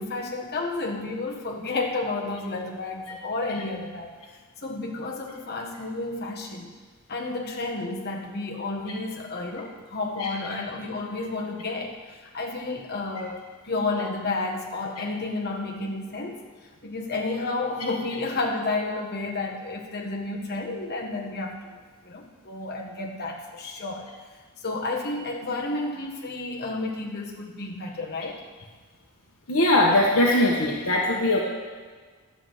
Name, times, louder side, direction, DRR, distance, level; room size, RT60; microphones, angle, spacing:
voice 1, 0.0-4.1 4.6-6.7 7.1-12.0 12.3-16.4 16.8-21.7 22.0-24.1 24.6-28.4, left 3 dB, 50° left, 0 dB, 1.5 m, -31 dB
voice 2, 29.5-31.4, left 1 dB, 75° left, -3 dB, 1.5 m, -20 dB
11.0 x 5.0 x 8.0 m, 1.5 s
head